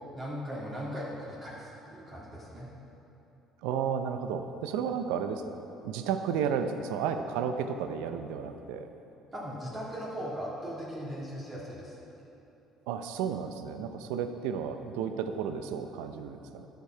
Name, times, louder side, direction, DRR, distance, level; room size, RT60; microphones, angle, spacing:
voice 1, 0.1-2.7 9.3-12.0, equal, 30° right, -7 dB, 1.8 m, -38 dB
voice 2, 3.6-5.4 5.8-8.9 12.9-16.7, right 7 dB, 85° right, 8 dB, 0.5 m, -32 dB
9.6 x 6.8 x 4.5 m, 3.0 s
supercardioid pair, 80°, 0 cm